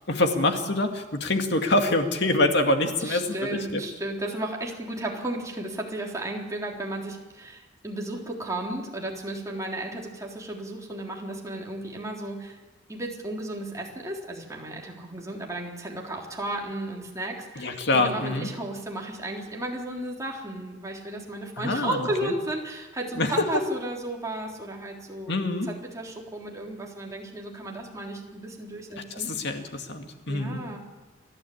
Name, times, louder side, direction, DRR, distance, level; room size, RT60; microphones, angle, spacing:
voice 1, 0.1-3.3 3.5-3.8 17.6-18.5 21.6-22.3 23.2-23.3 25.3-25.7 29.1-30.6, left 2 dB, 60° left, 5 dB, 2.3 m, -25 dB
voice 2, 3.0-12.6 12.9-25.4 25.7-29.3 30.3-30.8, right 1 dB, 15° right, -1 dB, 3.7 m, -34 dB
29.0 x 12.0 x 8.7 m, 1.2 s
head